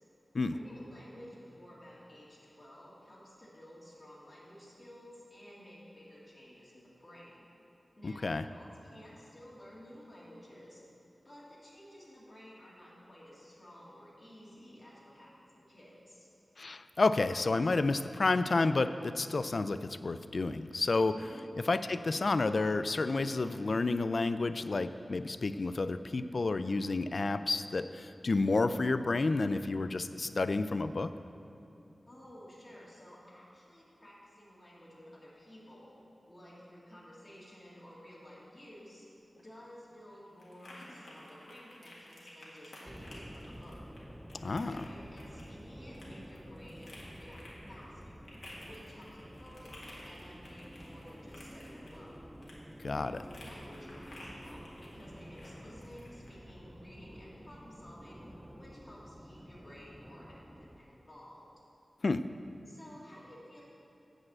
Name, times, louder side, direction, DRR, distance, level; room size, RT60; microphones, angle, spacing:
voice 1, 0.5-7.5 8.0-10.8 11.2-16.3 21.2-21.5 32.1-35.9 36.3-39.1 39.4-43.8 44.6-47.4 47.7-48.2 48.6-52.3 53.0-58.2 58.5-61.5 62.7-63.6, equal, 30° left, -7 dB, 2.3 m, -53 dB
voice 2, 8.0-8.4 16.6-21.2 21.7-31.1 44.4-44.8 52.8-53.2 62.0-62.2, left 3 dB, 60° left, 12 dB, 0.3 m, -30 dB
sound 1, 39.2-56.4, left 1 dB, 75° left, 1.8 m, -54 dB
sound 2, 42.9-60.8, equal, 5° right, 0.5 m, -50 dB
8.6 x 4.9 x 7.4 m, 2.7 s
wide cardioid pair, 75°, 0 cm